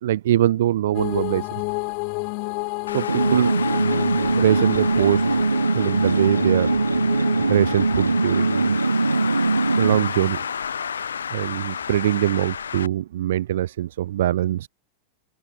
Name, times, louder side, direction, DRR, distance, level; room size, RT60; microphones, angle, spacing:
voice 1, 0.0-1.5 2.9-3.5 4.4-5.4 5.7-6.8 7.1-7.2 7.5-8.8 9.8-10.4 11.3-14.7, right 13 dB, 60° right, 0.5 m, -23 dB
sound 1, 0.9-9.7, left 40 dB or more, 45° left, 3.8 m, -32 dB
Traffic noise roadway noise, 2.9-12.9, left 7 dB, 70° left, 1.8 m, -32 dB
sound 2, 3.1-10.1, right 3 dB, 80° right, 1.2 m, -21 dB
open air
figure-of-eight pair, 90°, 0 cm